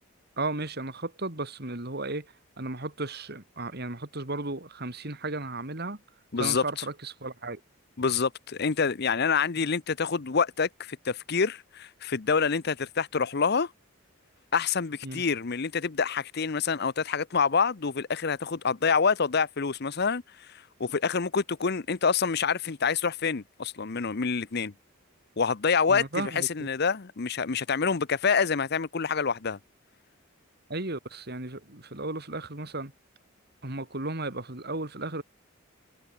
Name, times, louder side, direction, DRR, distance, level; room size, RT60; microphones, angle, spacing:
voice 1, 0.4-6.0 6.4-7.6 15.0-15.2 25.9-26.7 30.7-32.9 33.6-35.2, right 2 dB, 50° right, 2.9 m, -35 dB
voice 2, 6.3-6.6 8.0-13.7 14.5-24.7 25.4-29.6, left 5 dB, 50° left, 0.7 m, -27 dB
head